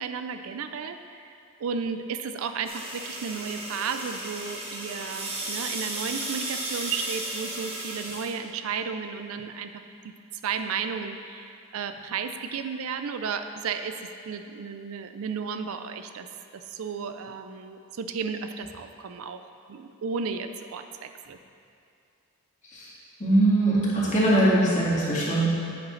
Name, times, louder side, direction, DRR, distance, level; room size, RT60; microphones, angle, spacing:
voice 1, 0.0-1.3 1.6-9.7 10.0-14.0 14.3-16.3 16.5-19.4 19.7-21.4, right 6 dB, 65° right, 8 dB, 0.4 m, -33 dB
sound 1, 2.6-8.3, right 2 dB, 25° right, 1.0 m, -34 dB
voice 2, 22.6-25.6, right 1 dB, 35° left, -7 dB, 2.0 m, -22 dB
9.5 x 7.6 x 3.1 m, 2.5 s
head